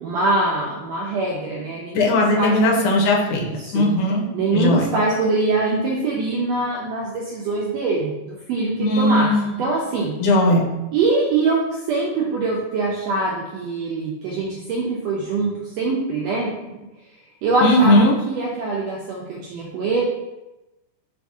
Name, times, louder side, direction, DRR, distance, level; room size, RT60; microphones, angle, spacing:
voice 1, 0.0-2.9 3.3-3.8 4.3-9.3 9.6-10.1 10.9-16.5 17.4-20.0, right 3 dB, 85° right, -3 dB, 1.5 m, -23 dB
voice 2, 1.9-3.5 3.7-4.2 4.5-4.9 8.8-9.5 10.2-10.7 17.6-18.1, left 1 dB, 80° left, 0 dB, 2.0 m, -17 dB
4.7 x 3.5 x 2.6 m, 1.0 s
omnidirectional pair, 3.5 m